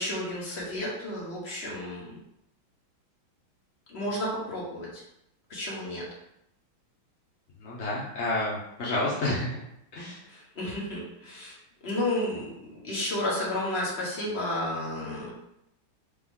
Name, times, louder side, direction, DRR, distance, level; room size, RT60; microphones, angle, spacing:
voice 1, 0.0-2.2 3.9-5.0 5.5-6.0 10.3-11.6 11.8-15.3, left 1 dB, 35° left, -6 dB, 1.3 m, -32 dB
voice 2, 7.6-9.6 9.9-10.2, left 2 dB, 55° left, -7 dB, 0.7 m, -29 dB
5.1 x 2.3 x 3.6 m, 0.81 s
omnidirectional pair, 2.1 m